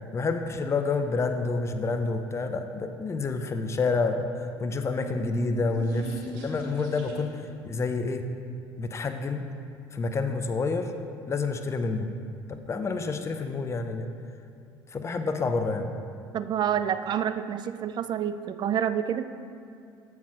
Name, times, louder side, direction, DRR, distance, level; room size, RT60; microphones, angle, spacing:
voice 1, 0.1-8.2 8.8-9.5 9.9-10.9 11.3-12.1 12.7-14.1 14.9-15.9, left 3 dB, 25° left, 6 dB, 0.6 m, -28 dB
sound 1, 4.6-7.5, right 2 dB, 80° right, 1.1 m, -40 dB
voice 2, 16.3-19.3, right 9 dB, 45° right, 12 dB, 0.4 m, -28 dB
7.3 x 4.7 x 5.8 m, 2.4 s
hypercardioid pair, 70°, 11 cm